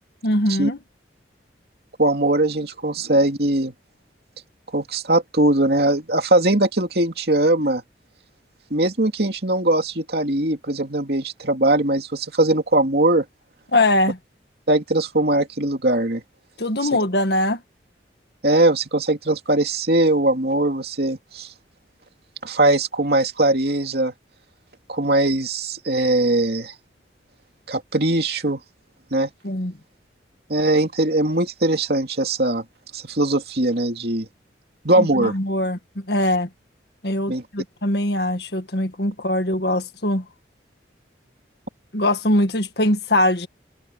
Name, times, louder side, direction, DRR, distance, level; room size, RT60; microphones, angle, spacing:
voice 1, 0.2-0.8 13.7-14.2 16.6-17.6 29.4-29.7 35.0-36.5 37.0-40.3 41.9-43.5, left 1 dB, 60° left, 1.8 m, -22 dB
voice 2, 2.0-3.7 4.7-7.8 8.7-13.2 14.7-16.2 18.4-21.5 22.4-24.1 24.9-26.7 27.7-28.6 29.1-29.3 30.5-32.6 32.9-34.3 34.8-35.3 37.3-37.4, right 1 dB, 55° right, 2.9 m, -20 dB
head